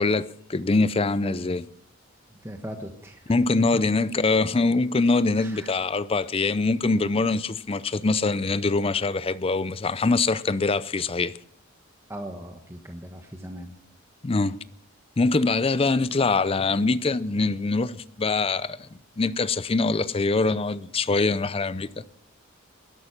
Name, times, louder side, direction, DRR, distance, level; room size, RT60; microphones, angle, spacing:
voice 1, 0.0-1.7 3.3-11.4 14.2-14.6 15.2-18.9 19.2-22.0, left 3 dB, 25° left, 0.5 m, -23 dB
voice 2, 2.4-3.2 3.6-3.8 5.4-5.7 12.1-13.7, equal, 15° right, 1.2 m, -38 dB
20.0 x 11.5 x 5.9 m
head